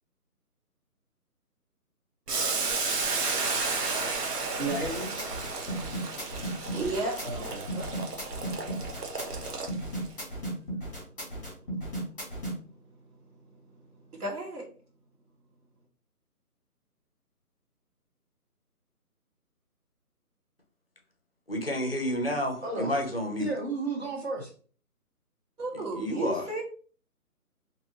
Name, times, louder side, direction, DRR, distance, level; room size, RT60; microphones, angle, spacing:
Boiling, 2.3-10.1, right 4 dB, 90° right, 0.9 m, -32 dB
voice 1, 4.6-5.2 7.2-7.7 22.6-23.0 23.4-24.5, right 2 dB, 45° right, 1 dB, 0.9 m, -33 dB
sound 1, 4.7-12.5, right 1 dB, 5° left, 1.1 m, -35 dB
voice 2, 6.6-7.5 7.7-8.6 10.3-14.7 25.6-26.6, right 2 dB, 70° right, -2 dB, 1.4 m, -38 dB
voice 3, 21.5-23.5 25.9-26.4, left 1 dB, 40° left, 3 dB, 0.5 m, -30 dB
2.7 x 2.5 x 2.7 m, 0.42 s
figure-of-eight pair, 165°, 46 cm